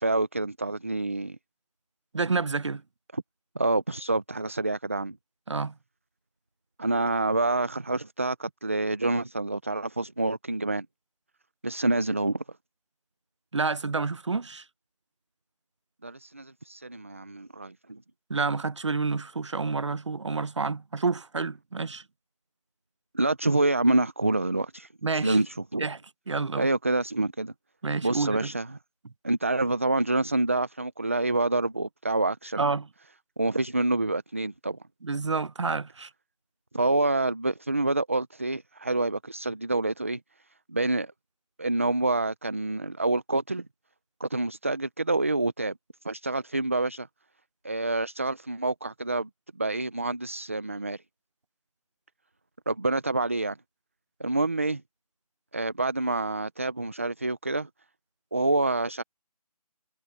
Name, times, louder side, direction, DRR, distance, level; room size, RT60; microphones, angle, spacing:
voice 1, 0.0-1.4 3.1-3.2 3.6-5.2 6.8-10.9 11.6-12.4 16.0-18.0 23.1-25.9 26.6-27.5 28.0-28.7 29.2-32.7 33.4-34.8 36.7-40.2 40.7-41.1 41.6-43.7 44.2-45.7 46.0-47.1 47.6-49.3 49.6-51.0 52.7-53.6 54.2-54.8 55.5-57.7 58.3-59.0, right 2 dB, 20° right, 0.7 m, -27 dB
voice 2, 2.1-2.8 5.5-5.7 13.5-14.6 18.3-22.0 25.0-25.4 25.8-26.0 26.3-26.7 27.8-28.5 32.6-32.9 35.0-36.1, right 4 dB, 45° right, 0.9 m, -29 dB
figure-of-eight pair, 175°, 20 cm